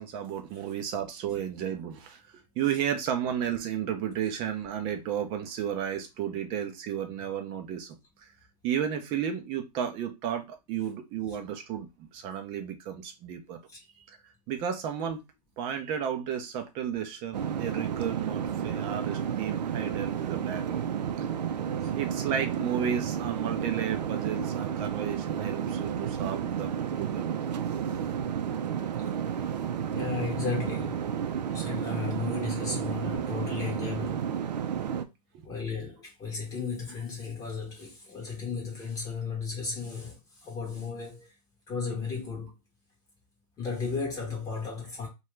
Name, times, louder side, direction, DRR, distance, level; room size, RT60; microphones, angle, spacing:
voice 1, 0.0-8.3 8.6-13.6 14.0-14.2 14.5-15.2 15.6-20.9 21.2-21.3 22.0-27.4 35.3-35.5, right 9 dB, 25° right, 0.5 m, -33 dB
sound 1, 17.3-35.0, right 8 dB, 80° right, 0.5 m, -31 dB
voice 2, 29.9-31.0 31.4-34.3 35.4-41.3 41.7-42.5 43.6-45.1, left 5 dB, 15° left, 0.8 m, -34 dB
2.7 x 2.3 x 3.1 m
hypercardioid pair, 140°, 21 cm